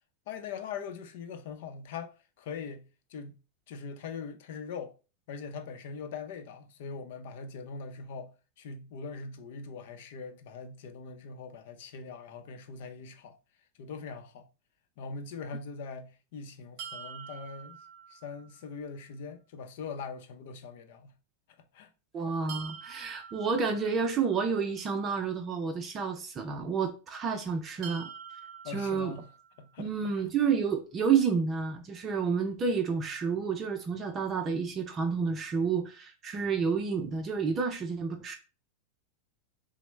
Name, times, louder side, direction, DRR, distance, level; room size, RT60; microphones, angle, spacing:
voice 1, 0.3-3.3 3.7-4.9 5.3-13.3 13.8-14.5 15.0-17.8 18.1-21.1 21.7-21.9 28.6-29.3 29.6-30.3, left 5 dB, 65° left, 0.6 m, -42 dB
sound 1, 16.8-18.7 22.5-24.6 27.8-29.9, right 8 dB, 50° right, 0.8 m, -46 dB
voice 2, 22.1-28.1 28.7-29.1 29.8-38.4, right 5 dB, 30° right, 0.5 m, -30 dB
6.0 x 2.1 x 3.2 m
supercardioid pair, 130°, 0 cm